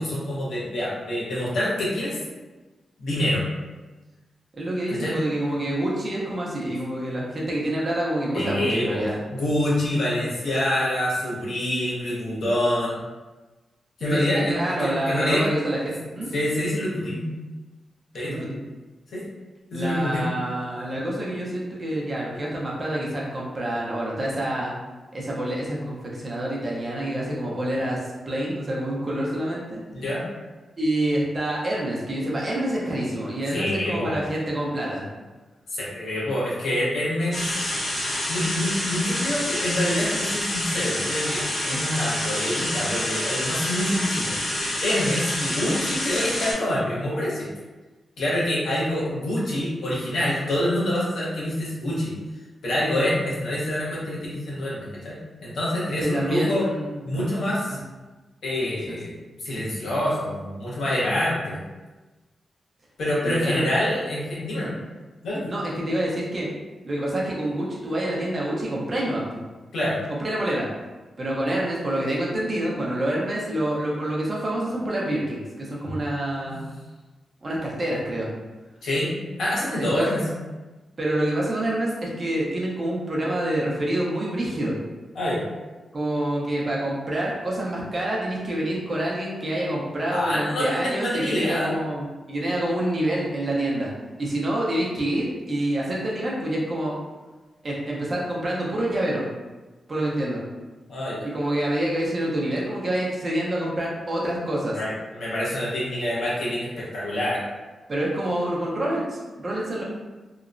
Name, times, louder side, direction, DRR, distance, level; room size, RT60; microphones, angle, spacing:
voice 1, 0.0-2.2 3.0-3.4 4.9-5.2 8.3-13.0 14.0-15.5 16.3-17.3 18.1-18.4 19.1-19.2 19.7-20.3 29.9-30.3 33.5-34.2 35.7-37.6 38.3-44.4 44.8-47.5 48.2-52.1 52.6-55.2 55.4-56.6 57.0-57.8 58.4-61.6 63.0-64.7 65.2-65.5 69.7-70.0 75.8-75.9 76.4-76.6 78.8-79.1 79.4-80.2 85.1-85.4 90.1-91.8 100.9-101.3 104.7-107.4, left 1 dB, 80° left, -7 dB, 0.9 m, -26 dB
voice 2, 4.5-9.2 14.0-16.3 18.3-18.6 19.7-24.7 25.1-28.0 28.3-29.8 30.8-35.0 56.0-57.2 57.7-57.8 58.6-59.0 63.2-63.6 64.6-64.7 65.5-66.5 66.8-69.4 70.2-70.7 71.2-76.7 77.4-78.3 79.8-80.1 81.0-84.8 85.9-93.9 94.2-97.0 97.6-99.2 99.9-100.4 101.2-104.8 107.9-109.8, right 1 dB, 35° right, -4 dB, 0.6 m, -27 dB
sound 1, 37.3-46.5, left 1 dB, 50° left, 0.8 m, -27 dB
2.9 x 2.0 x 2.4 m, 1.2 s
wide cardioid pair, 120°, 0 cm